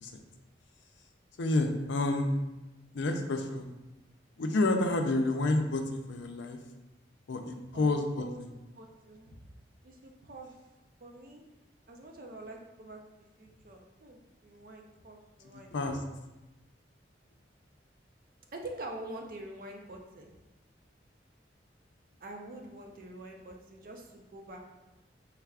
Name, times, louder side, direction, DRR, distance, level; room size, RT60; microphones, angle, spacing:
voice 1, 1.4-2.4 2.9-3.7 4.4-6.6 7.3-8.5 15.7-16.0, left 2 dB, 75° left, 5 dB, 0.4 m, -29 dB
voice 2, 7.7-8.4 8.7-9.5 9.8-10.6 11.0-11.4 11.9-16.0 18.5-20.3 22.2-24.6, right 1 dB, 50° right, 2 dB, 0.5 m, -46 dB
4.7 x 3.3 x 2.3 m, 1.0 s
head